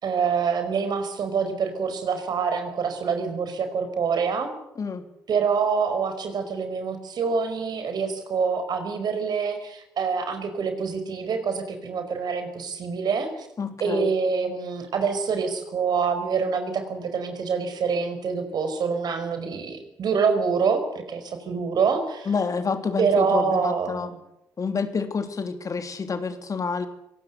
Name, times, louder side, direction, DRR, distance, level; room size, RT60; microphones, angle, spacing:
voice 1, 0.0-4.5 5.3-13.5 13.8-22.3 23.0-24.2, right 5 dB, 60° right, 7 dB, 5.1 m, -26 dB
voice 2, 13.6-14.1 22.3-24.1 24.6-26.9, left 5 dB, 45° left, 8 dB, 3.1 m, -28 dB
24.5 x 18.5 x 8.1 m, 0.81 s
hypercardioid pair, 45°, 8 cm